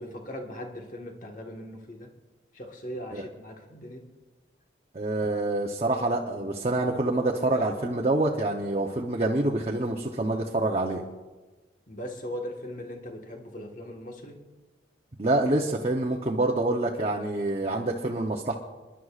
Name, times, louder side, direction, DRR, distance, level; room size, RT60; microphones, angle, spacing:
voice 1, 0.0-2.1 2.5-4.0 11.9-14.4, equal, 45° left, 2 dB, 1.5 m, -39 dB
voice 2, 4.9-11.0 15.2-18.5, right 2 dB, 35° right, -1 dB, 0.8 m, -26 dB
28.5 x 11.0 x 2.4 m, 1.2 s
head